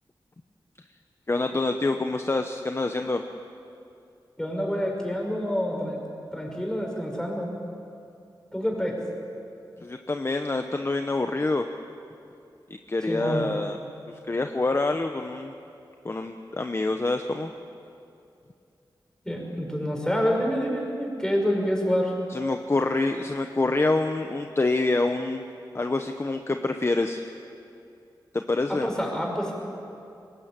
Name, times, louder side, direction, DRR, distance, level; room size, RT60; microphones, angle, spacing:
voice 1, 1.3-3.2 9.8-11.7 12.9-13.8 14.3-15.5 16.0-17.5 22.3-25.4 25.7-27.2 28.3-28.9, left 2 dB, 30° left, 6 dB, 0.9 m, -26 dB
voice 2, 4.4-6.0 6.3-7.5 8.5-9.0 13.1-13.5 19.2-22.1 28.7-29.5, equal, 10° left, 0 dB, 5.8 m, -27 dB
21.5 x 19.5 x 8.8 m, 2.6 s
wide cardioid pair, 90°, 8 cm